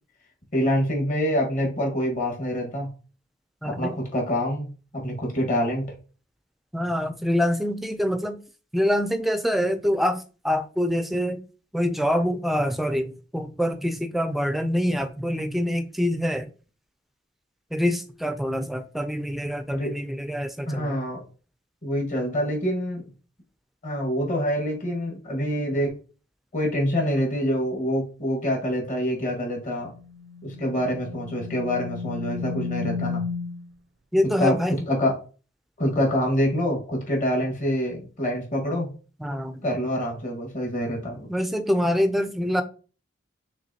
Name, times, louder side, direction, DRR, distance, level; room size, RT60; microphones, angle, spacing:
voice 1, 0.5-2.9 3.6-5.8 19.7-19.9 20.7-21.2 21.8-23.0 23.8-25.9 26.5-29.9 30.4-33.2 34.4-34.5 34.9-35.1 35.8-38.9 39.6-41.3, equal, 40° left, 1.6 m, -26 dB
voice 2, 3.6-4.0 6.7-8.4 8.7-11.4 11.7-16.5 17.7-21.0 34.1-34.8 35.8-36.0 39.2-39.6 41.3-42.6, equal, ahead, 0.4 m, -25 dB
sound 1, 29.8-33.7, left 5 dB, 75° right, 0.6 m, -33 dB
6.1 x 3.1 x 2.8 m
head